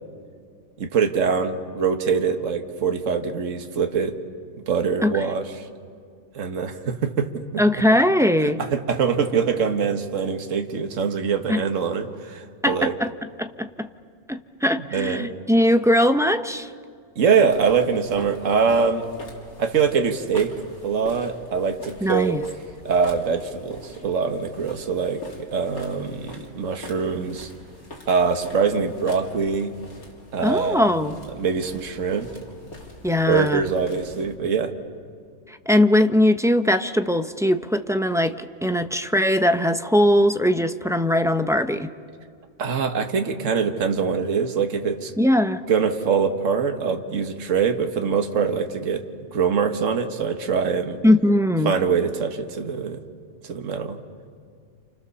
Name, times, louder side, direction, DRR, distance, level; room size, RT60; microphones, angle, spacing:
voice 1, 0.8-4.2 4.7-5.7 6.3-7.6 8.6-12.9 14.9-15.3 17.2-19.0 19.6-20.5 20.8-22.4 22.9-25.2 25.5-27.5 28.1-29.7 30.3-32.3 33.3-34.7 42.6-45.1 45.7-49.0 49.3-51.0 51.6-53.0 53.4-54.0, right 6 dB, 60° right, 6 dB, 1.8 m, -23 dB
voice 2, 7.6-8.6 11.5-11.6 12.6-13.1 13.4-13.9 14.3-16.7 22.0-22.4 30.4-31.2 33.0-33.7 35.5-41.9 45.2-45.6 51.0-51.7, left 1 dB, 5° right, 7 dB, 0.5 m, -20 dB
sound 1, 17.5-34.3, left 2 dB, 85° left, 3.9 m, -44 dB
29.5 x 28.5 x 7.0 m, 2.2 s
omnidirectional pair, 1.5 m